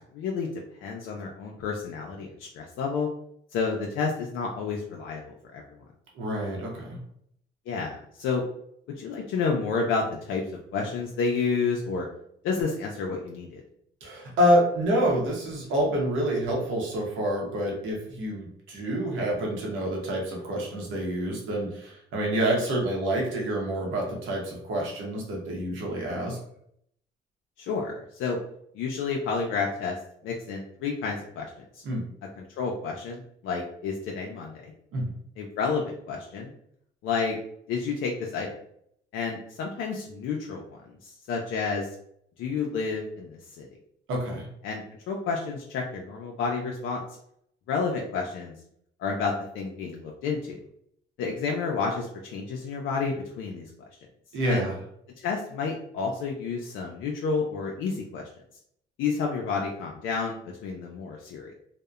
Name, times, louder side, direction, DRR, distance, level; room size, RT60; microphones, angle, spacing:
voice 1, 0.1-0.5 0.8-3.1 3.5-5.6 7.7-8.4 9.0-10.4 10.7-12.1 12.4-13.6 27.6-27.9 28.2-28.4 28.7-30.0 30.2-31.5 31.7-31.8 32.4-34.7 35.4-36.5 37.0-37.4 37.7-38.5 39.1-40.6 41.0-41.9 42.4-43.7 44.6-47.0 47.7-48.5 49.0-50.6 51.2-53.7 54.5-54.7 55.2-58.2 59.0-61.5, left 5 dB, 80° left, 0 dB, 0.4 m, -30 dB
voice 2, 6.2-7.0 14.0-26.4 31.8-32.0 34.9-35.2 44.1-44.5 54.3-54.7, equal, 85° right, -1 dB, 0.8 m, -27 dB
2.7 x 2.0 x 2.3 m, 0.70 s
cardioid pair, 90°, 20 cm